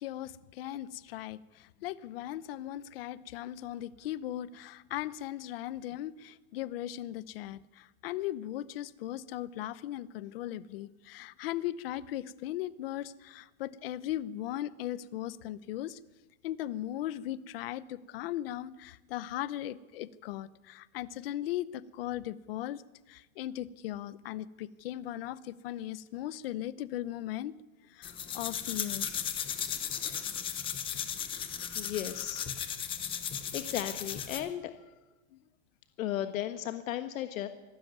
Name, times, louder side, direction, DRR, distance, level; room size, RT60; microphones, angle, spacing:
voice 1, 0.0-16.0 16.4-22.8 23.1-27.5 27.9-29.1 35.3-35.4, left 13 dB, 45° left, 17 dB, 0.8 m, -38 dB
sound 1, 28.0-34.5, left 8 dB, 15° left, 0.9 m, -36 dB
voice 2, 31.7-32.5 33.5-34.7 36.0-37.5, left 12 dB, 80° left, 9 dB, 1.4 m, -35 dB
25.5 x 13.0 x 9.4 m, 1.1 s
supercardioid pair, 175°, 40 cm